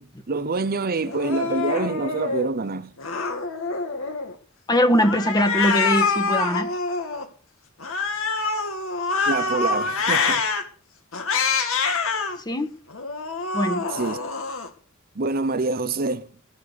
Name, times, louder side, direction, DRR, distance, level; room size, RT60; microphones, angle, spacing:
voice 1, 0.0-2.9 9.3-10.5 13.9-14.2 15.2-16.3, right 3 dB, 45° right, 0.8 m, -26 dB
Cat, 1.0-2.5 3.0-4.3 5.0-7.2 7.8-10.6 11.1-12.4 12.9-14.7, left 4 dB, 70° left, 2.4 m, -25 dB
voice 2, 4.7-6.7 12.4-12.7 13.5-13.9, equal, 20° left, 1.6 m, -21 dB
19.5 x 7.0 x 6.8 m
head